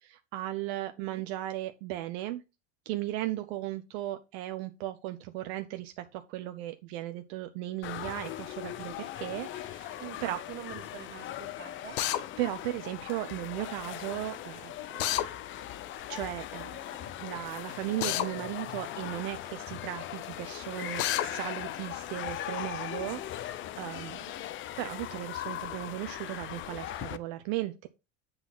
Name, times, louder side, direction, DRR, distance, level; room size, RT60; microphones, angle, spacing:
voice 1, 0.0-2.4 2.9-10.4 12.4-15.0 16.1-24.2 24.8-27.9, right 15 dB, 70° right, 0.7 m, -36 dB
voice 2, 1.0-1.3 10.0-12.0, right 9 dB, 30° right, 1.6 m, -45 dB
sound 1, 7.8-27.2, left 12 dB, 35° left, 0.5 m, -39 dB
Drill, 12.0-12.2 15.0-15.3 18.0-18.3 21.0-21.3, left 14 dB, 75° left, 0.8 m, -28 dB
7.9 x 4.0 x 5.8 m
supercardioid pair, 120°, 33 cm